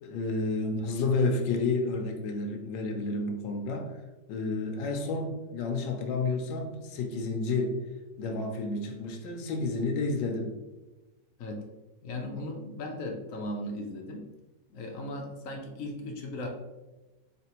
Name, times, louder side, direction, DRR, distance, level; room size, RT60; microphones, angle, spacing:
voice 1, 0.0-4.0 4.3-7.8 8.2-10.5, left 3 dB, 85° left, 3 dB, 1.3 m, -30 dB
voice 2, 12.0-14.3 14.7-16.5, left 1 dB, 65° left, 2 dB, 0.8 m, -37 dB
4.0 x 3.3 x 2.9 m, 1.1 s
omnidirectional pair, 1.9 m